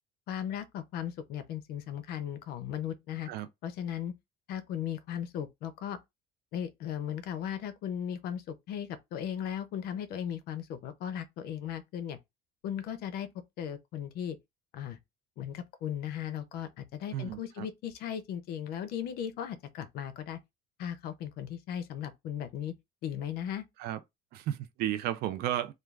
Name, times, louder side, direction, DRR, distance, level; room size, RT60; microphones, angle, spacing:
voice 1, 0.3-3.3 3.6-4.1 4.5-6.0 6.5-12.2 12.6-13.3 13.6-14.4 14.7-15.0 15.4-20.4 20.8-22.7 23.0-23.6, left 9 dB, 55° left, 0.5 m, -37 dB
voice 2, 17.1-17.7 23.8-24.0 24.3-25.7, right 12 dB, 55° right, 0.4 m, -33 dB
2.4 x 2.3 x 3.1 m
cardioid pair, 165°, 19 cm